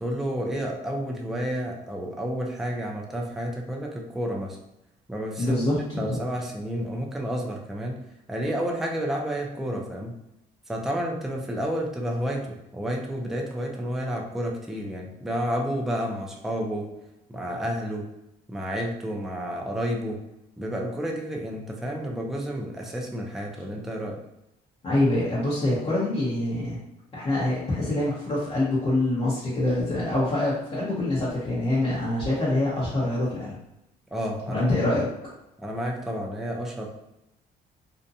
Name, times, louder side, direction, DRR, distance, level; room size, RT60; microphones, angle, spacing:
voice 1, 0.0-4.6 5.1-5.6 6.0-8.0 8.3-10.1 10.7-12.4 12.7-16.9 17.3-18.1 18.5-20.2 20.6-24.2 34.1-34.7 35.6-36.9, equal, ahead, 0 dB, 0.4 m, -30 dB
voice 2, 5.4-6.2 24.8-26.8 27.1-33.6 34.5-35.3, left 1 dB, 35° left, -8 dB, 0.8 m, -25 dB
2.6 x 2.1 x 2.6 m, 0.87 s
cardioid pair, 110°, 17 cm